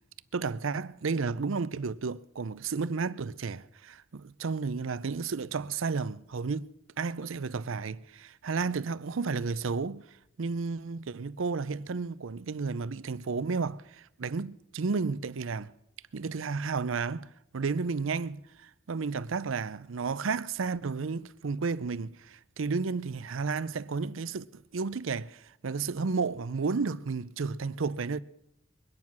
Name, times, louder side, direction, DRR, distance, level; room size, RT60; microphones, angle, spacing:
voice 1, 0.3-10.0 10.4-15.7 16.1-28.2, right 4 dB, 75° right, 0.6 m, -32 dB
22.5 x 9.6 x 6.0 m
head